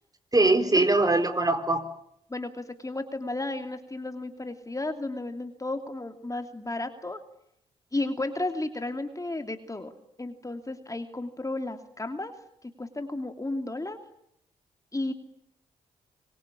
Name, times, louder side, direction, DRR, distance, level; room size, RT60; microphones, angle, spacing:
voice 1, 0.3-1.8, right 2 dB, 25° right, 8 dB, 4.2 m, -22 dB
voice 2, 2.3-7.2 7.9-9.9 10.2-12.3 12.8-14.0 14.9-15.1, left 2 dB, 20° left, 6 dB, 2.9 m, -33 dB
25.5 x 22.5 x 10.0 m, 0.73 s
hypercardioid pair, 45°, 16 cm